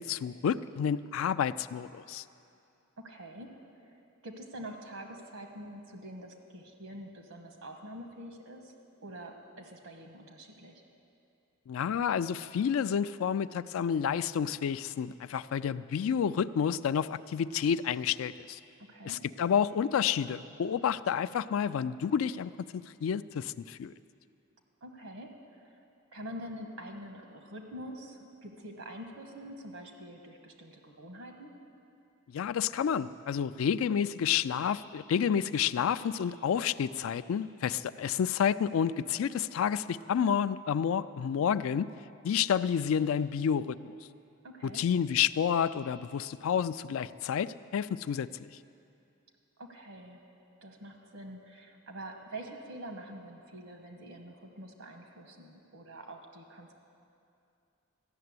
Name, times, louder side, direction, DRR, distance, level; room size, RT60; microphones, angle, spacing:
voice 1, 0.0-2.2 11.7-18.6 19.0-23.9 32.3-41.9 42.2-43.9 44.6-48.5, left 8 dB, 75° left, 14 dB, 0.3 m, -30 dB
voice 2, 3.0-3.5 3.8-8.7 9.0-10.8 18.8-19.2 24.8-25.8 26.1-31.5 44.4-44.8 49.6-50.2 50.6-56.7, right 1 dB, 85° right, 3 dB, 1.3 m, -46 dB
13.5 x 6.7 x 9.5 m, 2.6 s
head